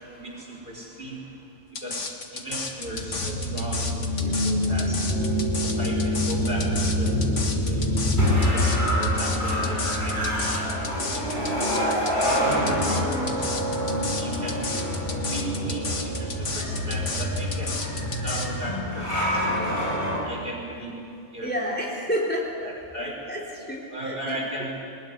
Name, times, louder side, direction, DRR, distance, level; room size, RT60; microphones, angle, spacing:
voice 1, 0.1-1.2 1.8-5.0 5.6-7.1 7.7-8.0 8.5-8.6 9.0-13.5 14.2-14.7 15.2-17.8 18.2-19.8 20.2-21.0 21.3-21.5 22.6-23.2 23.9-24.8, right 1 dB, 50° right, -1 dB, 5.4 m, -36 dB
sound 1, 1.8-18.5, left 4 dB, 85° left, 2.1 m, -33 dB
sound 2, 2.8-20.2, equal, 45° left, 7.4 m, -26 dB
voice 2, 21.4-22.5 23.3-23.4 23.7-24.4, equal, 10° left, -3 dB, 3.9 m, -29 dB
22.0 x 20.5 x 9.9 m, 2.5 s
omnidirectional pair, 1.2 m